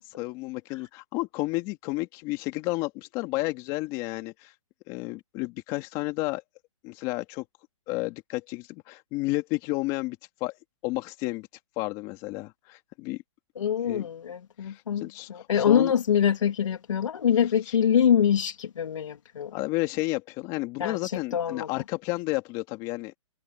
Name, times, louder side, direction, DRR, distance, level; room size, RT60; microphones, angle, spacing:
voice 1, 0.2-4.5 4.9-6.4 6.8-7.4 7.9-10.5 10.8-11.5 11.8-13.2 13.8-14.1 14.6-15.9 17.7-17.8 19.5-23.2, left 21 dB, 25° left, 2.4 m, -31 dB
voice 2, 13.6-19.6 20.8-21.7, left 8 dB, 70° left, 2.8 m, -25 dB
hypercardioid pair, 165°, 17 cm